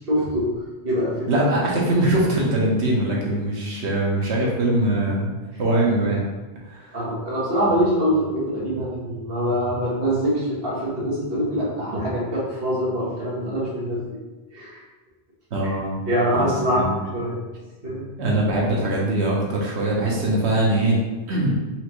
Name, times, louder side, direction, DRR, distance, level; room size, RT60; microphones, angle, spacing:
voice 1, 0.1-0.5 0.8-1.2 6.9-14.0 14.5-14.8 16.1-16.8 17.1-17.3 17.8-18.1, equal, 60° right, -7 dB, 1.6 m, -24 dB
voice 2, 1.3-5.3 5.6-6.2 6.6-7.0 15.5-16.0 16.3-17.0 18.2-21.0 21.3-21.5, right 1 dB, 85° right, -3 dB, 1.2 m, -22 dB
4.5 x 3.3 x 3.0 m, 1.2 s
omnidirectional pair, 1.1 m